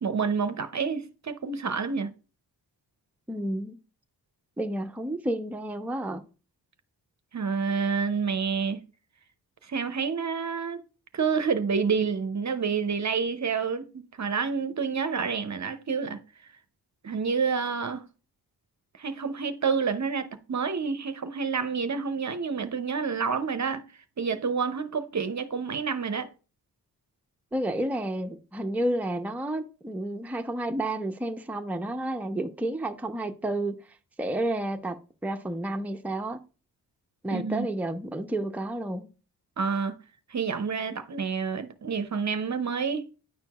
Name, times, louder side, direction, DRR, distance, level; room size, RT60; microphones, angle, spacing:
voice 1, 0.0-2.1 7.3-8.8 9.6-10.8 11.1-16.2 17.0-18.0 19.0-23.8 24.2-26.3 37.3-37.7 39.6-39.9 40.3-43.1, right 5 dB, 40° right, 0.7 m, -28 dB
voice 2, 3.3-3.8 4.6-6.2 27.5-33.8 34.2-35.0 35.2-36.4 37.2-39.1, right 1 dB, 5° right, 0.6 m, -30 dB
9.6 x 4.4 x 2.3 m
cardioid pair, 50°, 42 cm